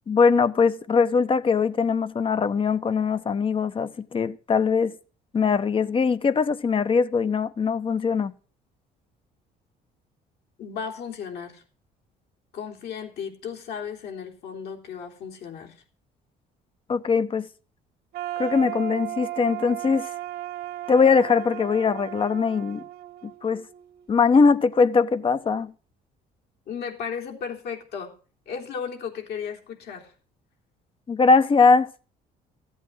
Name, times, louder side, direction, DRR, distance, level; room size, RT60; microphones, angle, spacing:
voice 1, 0.1-5.0 5.3-8.3 16.9-17.5 18.4-20.1 20.9-22.8 23.2-23.7 24.1-25.7 31.1-31.9, left 5 dB, 30° left, 0.9 m, -21 dB
voice 2, 10.6-11.6 12.5-15.8 26.7-28.1 28.4-30.1, left 6 dB, 70° left, 3.5 m, -35 dB
sound 1, 18.1-24.1, right 14 dB, 70° right, 1.0 m, -35 dB
14.0 x 8.3 x 6.3 m
cardioid pair, 110°, 17 cm